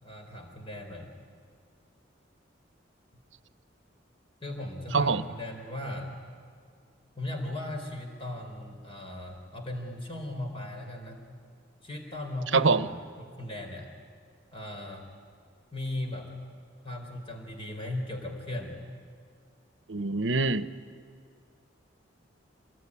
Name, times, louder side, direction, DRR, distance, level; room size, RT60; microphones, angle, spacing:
voice 1, 0.0-1.1 4.4-6.2 7.2-11.2 11.8-13.9 14.5-15.1 15.7-16.3 16.8-18.8, left 1 dB, 30° left, 3 dB, 4.2 m, -37 dB
voice 2, 4.9-5.2 12.5-12.9 19.9-20.6, right 4 dB, 75° right, 13 dB, 0.9 m, -24 dB
27.0 x 20.5 x 9.9 m, 2.2 s
head